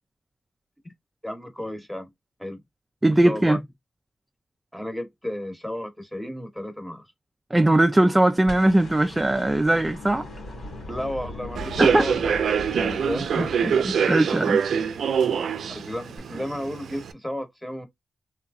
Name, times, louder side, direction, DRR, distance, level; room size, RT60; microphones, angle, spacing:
voice 1, 1.2-2.1 2.4-2.6 3.2-3.6 4.7-7.0 10.9-12.4 12.7-13.9 15.7-17.8, left 1 dB, 5° left, 0.9 m, -33 dB
voice 2, 3.0-3.6 7.5-10.3 11.8-12.1 13.9-14.6, right 1 dB, 15° right, 0.3 m, -20 dB
sound 1, 8.5-14.6 16.2-16.3, left 1 dB, 70° left, 2.3 m, -39 dB
Human voice / Subway metro underground, 11.5-17.1, right 7 dB, 85° right, 0.4 m, -24 dB
3.4 x 2.9 x 2.3 m
wide cardioid pair, 135°, 0 cm